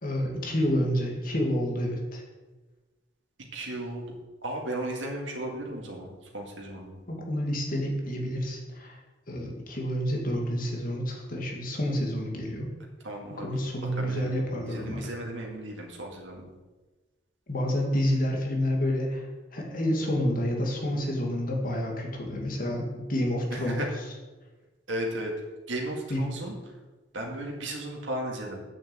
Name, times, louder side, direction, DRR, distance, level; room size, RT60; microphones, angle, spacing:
voice 1, 0.0-2.2 7.1-9.0 9.3-12.7 13.4-15.1 17.5-23.9 26.1-26.3, equal, 50° left, 0 dB, 2.2 m, -29 dB
voice 2, 3.5-4.0 4.4-7.0 13.0-13.6 14.0-14.4 14.7-16.5 23.5-23.9 24.9-25.3 25.7-26.6 27.1-28.6, right 1 dB, 85° right, -1 dB, 2.0 m, -35 dB
8.6 x 6.5 x 7.8 m, 1.2 s
head